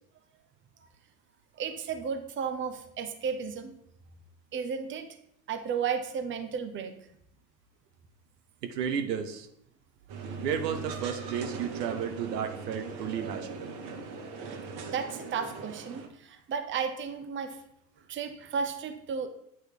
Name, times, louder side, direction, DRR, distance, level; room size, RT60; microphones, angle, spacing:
voice 1, 1.6-3.7 4.5-5.1 5.5-6.9 14.9-17.6 18.1-19.3, right 6 dB, 25° right, 7 dB, 0.8 m, -33 dB
voice 2, 8.6-9.5 10.4-13.7, right 8 dB, 80° right, 7 dB, 0.9 m, -33 dB
sound 1, 10.1-16.1, right 4 dB, 50° right, 1.3 m, -39 dB
8.6 x 3.1 x 4.9 m, 0.75 s
hypercardioid pair, 90°, 48 cm